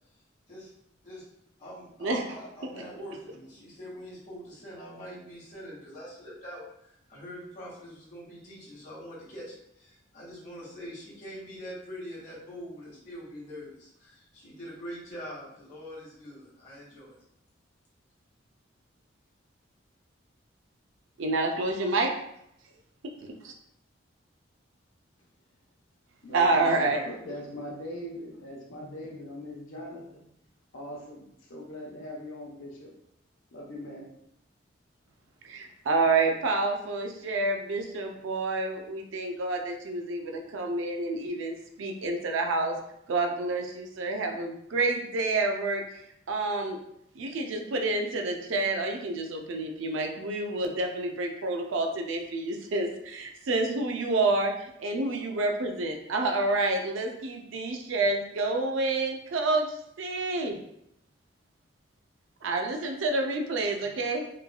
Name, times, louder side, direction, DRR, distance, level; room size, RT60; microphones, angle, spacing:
voice 1, 1.6-6.7 7.1-17.1, equal, 40° left, -7 dB, 1.2 m, -43 dB
voice 2, 21.2-22.1 23.4-23.5 26.3-27.0 35.4-42.8 43.1-45.8 46.3-46.8 47.2-60.6 62.4-64.2, right 2 dB, 75° right, 3 dB, 0.4 m, -28 dB
voice 3, 26.2-30.3 30.7-32.9 33.5-34.1, equal, 90° left, -3 dB, 0.8 m, -41 dB
3.1 x 2.4 x 2.2 m, 0.76 s
head